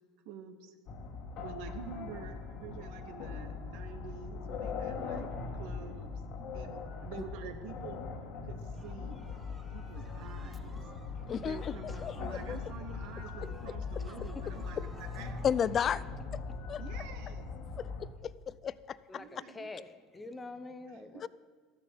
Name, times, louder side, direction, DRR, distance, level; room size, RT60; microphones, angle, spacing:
voice 1, 0.2-0.7 1.4-5.3 5.6-6.2 6.5-8.0 8.4-9.1 9.7-10.8 11.3-15.5 15.8-16.0 16.8-17.5 19.1-19.7 20.9-21.0, right 6 dB, 65° right, 9 dB, 1.2 m, -48 dB
sound 1, 0.9-18.1, left 4 dB, 55° left, 1.5 m, -41 dB
sound 2, 8.7-16.1, right 2 dB, 25° right, 3.3 m, -57 dB
voice 2, 10.6-11.3 11.9-12.0 14.0-14.3 19.1-21.3, left 2 dB, 15° left, 10 dB, 1.0 m, -47 dB
voice 3, 11.3-11.7 12.0-12.6 13.4-13.8 15.4-16.0 16.3-16.4 16.7-16.8 17.8-17.9 18.2-18.3 18.6-19.0 21.2-21.3, left 8 dB, 40° left, 19 dB, 0.4 m, -32 dB
13.0 x 6.9 x 8.0 m, 1.5 s
hypercardioid pair, 80°, 0 cm